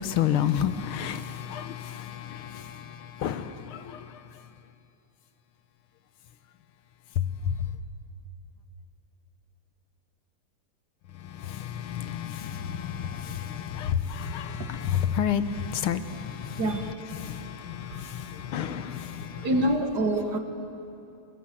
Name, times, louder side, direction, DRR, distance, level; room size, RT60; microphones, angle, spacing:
voice 1, 0.0-4.5 7.2-7.8 11.1-19.5, left 9 dB, 85° left, 11 dB, 1.8 m, -31 dB
voice 2, 14.4-15.1 16.5-18.5 19.1-20.4, right 1 dB, 50° right, 6 dB, 1.9 m, -30 dB
25.5 x 23.5 x 7.6 m, 2.7 s
omnidirectional pair, 2.3 m